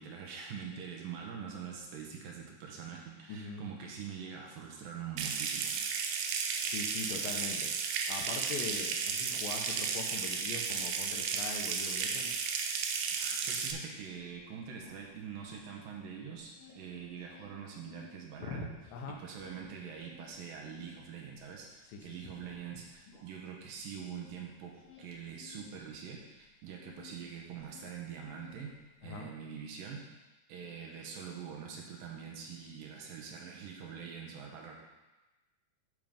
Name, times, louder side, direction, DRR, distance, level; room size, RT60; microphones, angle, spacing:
voice 1, 0.0-5.9 13.1-18.7 19.1-28.7 29.0-30.0 30.5-34.7, right 7 dB, 70° right, 0 dB, 2.4 m, -44 dB
voice 2, 3.3-3.7 6.6-7.7 8.1-12.3 18.4-19.2 21.9-22.2 29.0-29.3, left 4 dB, 80° left, 3 dB, 2.1 m, -42 dB
Water tap faucet / Sink (filling or washing) / Trickle dribble, 5.2-13.7, right 6 dB, 85° right, 1.9 m, -34 dB
sound 1, 14.1-16.0 16.3-18.2 18.6-27.2 27.5-29.0, left 8 dB, 45° left, 1.8 m, -57 dB
11.0 x 3.8 x 5.1 m, 1.1 s
omnidirectional pair, 4.8 m